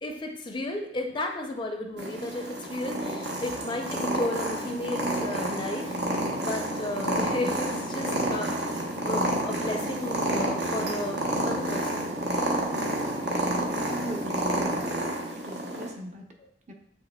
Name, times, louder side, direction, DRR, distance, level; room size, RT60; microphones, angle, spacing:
voice 1, 0.0-6.0 6.4-12.2 16.4-16.5, left 1 dB, 25° left, 3 dB, 0.4 m, -34 dB
Purr, 2.0-15.9, right 1 dB, 75° right, 0.8 m, -29 dB
voice 2, 13.9-16.2 16.7-16.8, equal, 40° right, 2 dB, 0.7 m, -39 dB
7.7 x 2.9 x 2.2 m, 0.73 s
head